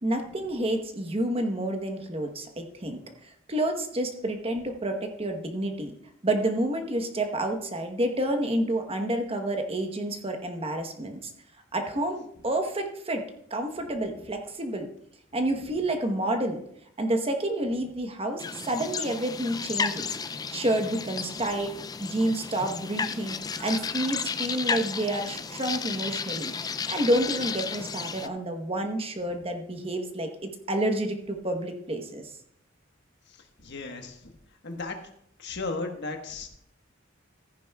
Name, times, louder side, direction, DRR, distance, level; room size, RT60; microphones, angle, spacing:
voice 1, 0.0-5.9 6.2-11.3 11.7-13.2 13.5-14.9 15.3-16.6 17.0-21.7 22.0-26.5 26.9-32.3, right 1 dB, 30° right, 5 dB, 1.0 m, -29 dB
sound 1, 18.4-28.3, left 5 dB, 20° left, 0.3 m, -33 dB
voice 2, 33.6-34.1 34.6-35.0 35.4-36.5, left 3 dB, 55° left, 4 dB, 1.3 m, -34 dB
14.5 x 10.0 x 2.3 m, 0.70 s
head